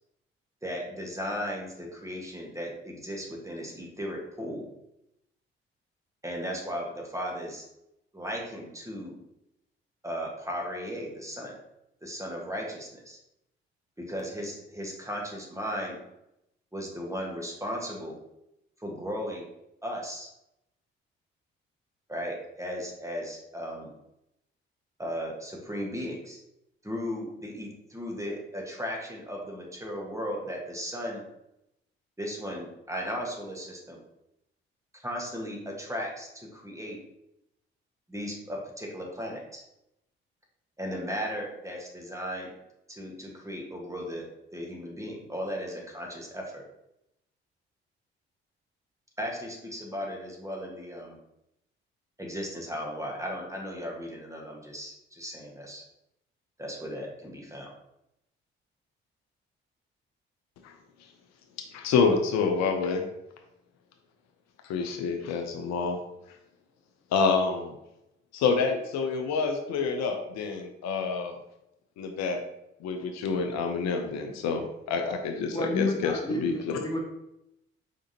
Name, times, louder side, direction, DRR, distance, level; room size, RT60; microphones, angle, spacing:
voice 1, 0.6-4.7 6.2-7.7 8.1-9.2 10.0-11.6 12.0-13.2 14.0-16.0 16.7-18.2 18.8-19.5 19.8-20.3 22.1-23.9 25.0-26.4 26.8-31.3 32.2-34.0 34.9-37.0 38.1-39.6 40.8-42.5 42.9-46.6 49.2-51.2 52.2-55.8 56.6-57.7, equal, 10° right, 0 dB, 1.4 m, -36 dB
voice 2, 61.7-63.0 64.6-66.0 67.1-67.7 68.3-71.3 72.0-72.4 72.8-76.5, left 5 dB, 60° left, 4 dB, 0.6 m, -27 dB
voice 3, 75.5-77.0, left 1 dB, 15° left, 0 dB, 0.8 m, -30 dB
5.0 x 3.6 x 2.8 m, 0.84 s
figure-of-eight pair, 40°, 30 cm